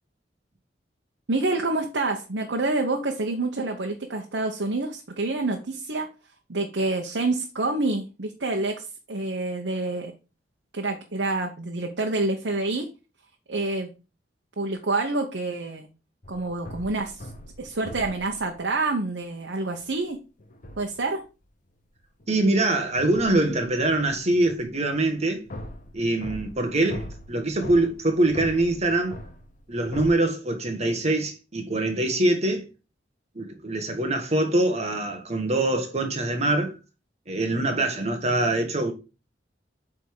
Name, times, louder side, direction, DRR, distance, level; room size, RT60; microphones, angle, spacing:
voice 1, 1.3-6.1 6.5-10.1 10.7-12.9 13.5-13.9 14.6-15.9 16.3-17.3 17.6-20.2 20.8-21.2, right 2 dB, 75° right, 1.0 m, -27 dB
sound 1, 16.2-18.7 19.8-20.0 20.4-21.2 22.0-30.1, left 1 dB, 45° left, 0.9 m, -41 dB
voice 2, 22.3-25.5 25.9-29.2 29.7-32.7 33.3-36.7 37.3-38.9, right 2 dB, 40° right, 1.4 m, -24 dB
8.4 x 3.6 x 4.7 m
head